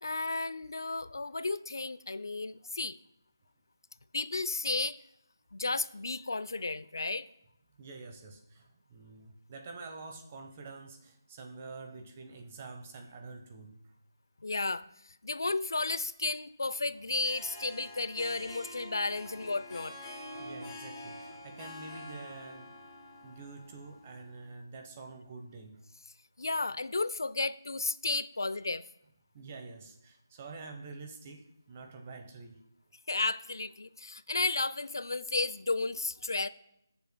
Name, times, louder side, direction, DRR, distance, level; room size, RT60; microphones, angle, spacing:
voice 1, 0.0-3.0 4.1-5.0 5.5-7.3 14.4-19.9 26.4-28.8 33.1-36.5, left 3 dB, 70° left, 16 dB, 0.4 m, -33 dB
voice 2, 7.8-13.7 18.2-18.4 19.3-19.4 20.3-22.7 23.2-25.8 29.3-32.6, right 3 dB, 25° right, 5 dB, 0.9 m, -47 dB
Harp, 17.0-24.4, left 1 dB, 10° left, 1.8 m, -46 dB
16.5 x 6.9 x 2.2 m, 0.82 s
figure-of-eight pair, 165°, 2 cm